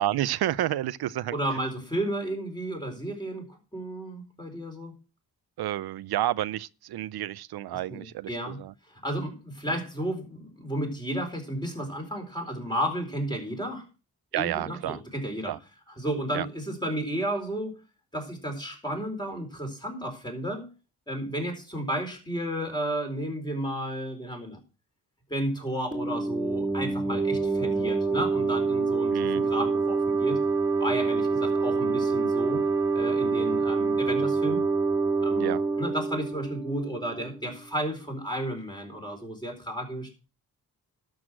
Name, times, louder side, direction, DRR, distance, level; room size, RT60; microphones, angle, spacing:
voice 1, 0.0-1.3 5.6-8.3 8.6-8.7 14.3-15.0 15.5-15.6 16.3-16.5 29.1-29.5 35.4-35.6, right 13 dB, 85° right, 0.5 m, -30 dB
voice 2, 1.3-5.0 7.9-8.6 8.9-13.9 14.3-15.5 15.9-17.8 18.1-20.7 21.1-24.6 25.3-30.4 30.8-32.6 32.9-34.7 35.2-40.1, right 1 dB, 10° left, 4.2 m, -33 dB
sound 1, 25.9-37.3, right 4 dB, 10° right, 2.5 m, -26 dB
12.5 x 6.4 x 6.1 m
wide cardioid pair, 95°, 37 cm